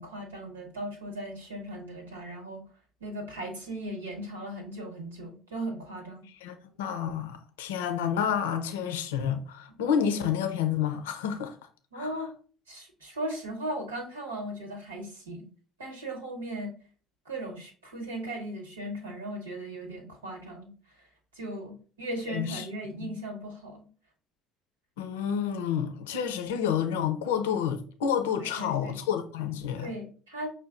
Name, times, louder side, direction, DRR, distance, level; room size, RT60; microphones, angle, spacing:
voice 1, 0.0-2.6 3.0-6.2 11.9-12.3 12.7-15.5 15.8-16.7 17.2-20.7 21.3-23.8 28.4-29.0 29.8-30.5, right 1 dB, 85° right, 1.2 m, -37 dB
voice 2, 6.4-11.6 12.0-12.1 22.3-22.7 23.0-23.1 25.0-29.9, left 8 dB, 75° left, 0.5 m, -29 dB
5.7 x 2.2 x 3.7 m
figure-of-eight pair, 60°, 0 cm